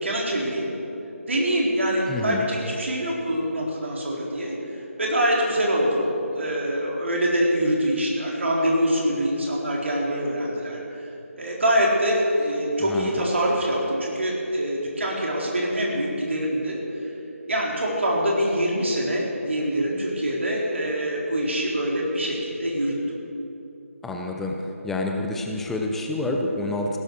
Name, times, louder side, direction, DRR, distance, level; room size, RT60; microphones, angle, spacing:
voice 1, 0.0-0.7 1.2-4.5 5.0-6.1 6.3-10.8 11.4-17.1 17.5-22.9, equal, 55° right, -2 dB, 4.1 m, -24 dB
voice 2, 2.1-2.4 12.8-13.1 24.0-24.5 24.8-27.0, left 2 dB, 5° left, 1 dB, 0.6 m, -28 dB
17.0 x 12.0 x 6.3 m, 2.8 s
figure-of-eight pair, 155°, 8 cm